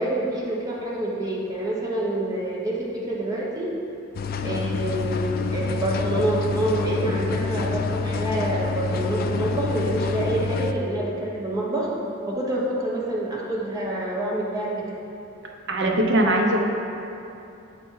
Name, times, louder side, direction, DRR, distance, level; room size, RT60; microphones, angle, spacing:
voice 1, 0.0-3.7 4.4-11.9 12.3-14.7, right 1 dB, 20° right, -5 dB, 1.1 m, -27 dB
sound 1, 4.1-10.7, left 4 dB, 45° left, 0.3 m, -27 dB
voice 2, 15.7-16.6, right 1 dB, 60° right, 1 dB, 0.7 m, -20 dB
7.3 x 4.3 x 4.6 m, 2.7 s
head